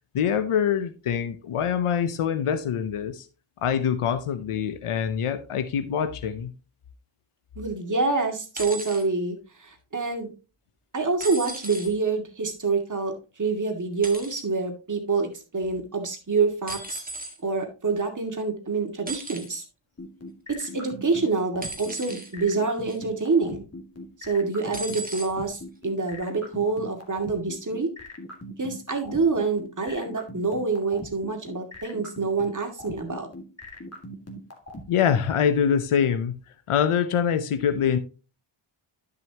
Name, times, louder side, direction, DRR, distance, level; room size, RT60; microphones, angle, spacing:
voice 1, 0.1-3.3 3.6-6.5 34.9-36.3 36.7-38.0, left 8 dB, 85° left, 11 dB, 0.9 m, -24 dB
voice 2, 7.6-10.3 10.9-17.0 17.4-19.6 20.6-23.6 24.2-27.9 28.6-33.3, right 4 dB, 35° right, 4 dB, 2.2 m, -27 dB
sound 1, 8.5-9.0 11.2-11.9 14.0-14.4 16.7-17.4 19.1-19.6 21.6-22.3 22.9-23.2 24.7-25.3 26.3-26.4, right 2 dB, 15° right, 1.7 m, -36 dB
sound 2, 20.0-34.8, left 1 dB, 30° left, 2.1 m, -40 dB
10.5 x 6.9 x 2.9 m, 0.32 s
wide cardioid pair, 95°, 50 cm